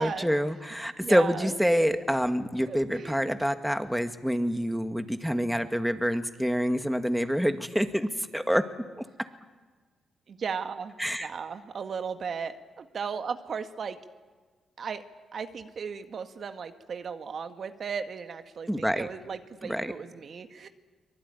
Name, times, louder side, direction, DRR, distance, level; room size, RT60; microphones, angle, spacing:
voice 1, 0.0-8.6 9.0-9.1 11.0-11.3 18.7-19.1 19.6-19.9, equal, ahead, 8 dB, 2.0 m, -27 dB
voice 2, 1.0-1.5 1.8-1.9 2.7-3.2 10.3-10.9 11.2-14.0 14.8-15.0 15.3-20.7, right 6 dB, 60° right, 8 dB, 1.6 m, -36 dB
24.0 x 20.0 x 9.9 m, 1.4 s
supercardioid pair, 50°, 0 cm